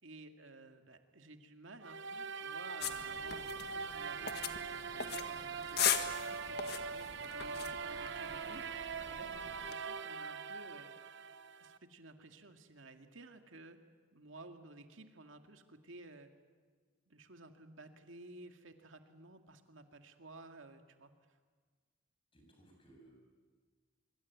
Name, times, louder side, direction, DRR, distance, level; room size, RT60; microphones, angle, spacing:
voice 1, 0.0-4.6 4.9-10.9 11.6-13.8 14.1-16.3 17.1-21.1, right 2 dB, 85° right, 6 dB, 2.1 m, -55 dB
sound 1, 1.8-11.8, right 5 dB, 65° right, 0.9 m, -42 dB
sound 2, 2.8-9.7, left 9 dB, 55° left, 1.6 m, -40 dB
voice 2, 22.3-23.1, right 2 dB, 30° left, 1 dB, 7.6 m, -61 dB
24.5 x 23.5 x 9.5 m, 1.5 s
head